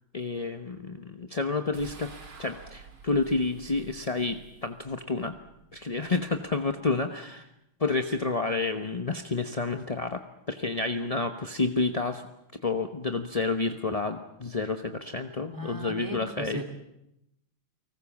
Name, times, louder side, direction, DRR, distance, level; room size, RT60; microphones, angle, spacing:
voice 1, 0.1-2.1 2.4-5.3 5.7-7.5 7.8-10.2 10.5-12.2 12.6-16.6, left 3 dB, 30° left, 6 dB, 0.6 m, -29 dB
sound 1, 1.7-7.1, right 4 dB, 75° right, 3.8 m, -50 dB
voice 2, 15.5-16.7, right 1 dB, 10° right, 7 dB, 3.0 m, -37 dB
29.5 x 19.5 x 7.3 m, 0.82 s
omnidirectional pair, 2.3 m